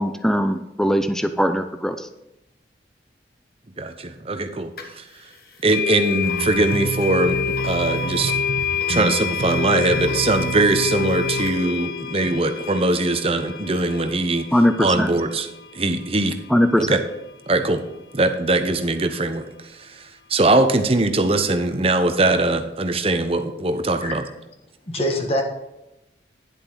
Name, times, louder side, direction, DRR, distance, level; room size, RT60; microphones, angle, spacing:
voice 1, 0.0-2.1 14.5-15.1 16.5-17.0, equal, 5° left, 9 dB, 0.5 m, -20 dB
voice 2, 3.8-4.7 5.0-5.1 5.6-8.3 8.9-14.5 14.8-15.5 15.7-16.4 16.8-17.0 17.5-17.8 18.1-19.5 19.8-20.0 20.3-24.2, right 2 dB, 35° right, 8 dB, 0.8 m, -21 dB
sound 1, 4.8-4.9 5.7-16.7, left 7 dB, 55° left, 1.3 m, -28 dB
sound 2, 6.2-11.5, right 3 dB, 80° right, 0.9 m, -30 dB
voice 3, 24.0-24.3 24.8-25.4, equal, 35° left, 2 dB, 1.2 m, -24 dB
10.0 x 8.0 x 3.9 m, 0.92 s
head